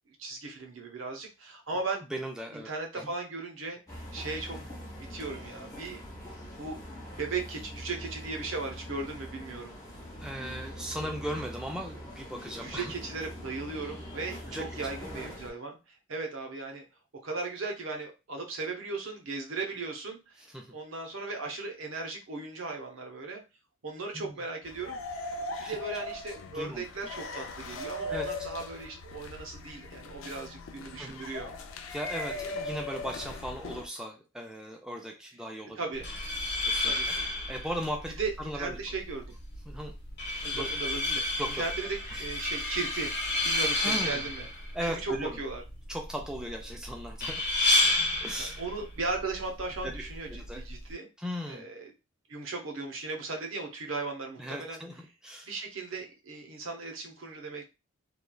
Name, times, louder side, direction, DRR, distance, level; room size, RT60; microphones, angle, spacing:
voice 1, 0.2-2.1 2.5-4.6 5.1-6.0 6.6-6.8 7.2-9.8 12.6-15.8 16.1-16.8 17.2-23.4 23.8-25.0 25.6-31.5 35.8-36.1 36.8-37.1 38.2-39.3 40.4-44.5 44.8-45.6 48.4-51.1 51.5-51.9 52.3-54.8 55.5-57.6, right 3 dB, 70° right, 2 dB, 0.7 m, -37 dB
voice 2, 2.1-3.1 10.2-12.9 14.5-14.7 20.5-20.7 24.1-24.4 25.5-25.8 26.5-26.8 28.1-28.3 31.0-31.2 31.9-35.9 36.6-37.2 37.5-38.8 39.7-39.9 40.4-40.7 41.4-41.6 42.1-42.2 43.8-44.2 44.7-45.4 45.9-47.5 48.2-48.6 49.8-49.9 50.3-50.6 51.2-51.6 54.4-55.5, equal, 5° right, 1 dB, 0.3 m, -37 dB
sound 1, 3.9-15.5, equal, 15° left, 0.8 m, -43 dB
sound 2, 24.6-33.9, left 2 dB, 70° left, 0.4 m, -39 dB
sound 3, 35.9-50.9, left 2 dB, 50° left, 0.9 m, -31 dB
3.0 x 2.3 x 2.3 m, 0.28 s
head